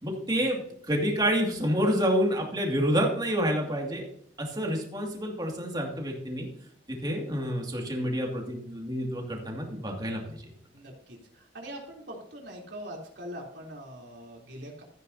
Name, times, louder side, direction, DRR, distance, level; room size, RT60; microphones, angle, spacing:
voice 1, 0.0-4.1 4.4-6.5 6.9-10.5, equal, 25° right, 0 dB, 2.4 m, -28 dB
voice 2, 10.7-14.8, equal, 75° right, -1 dB, 3.5 m, -43 dB
14.5 x 9.4 x 2.8 m, 0.63 s
head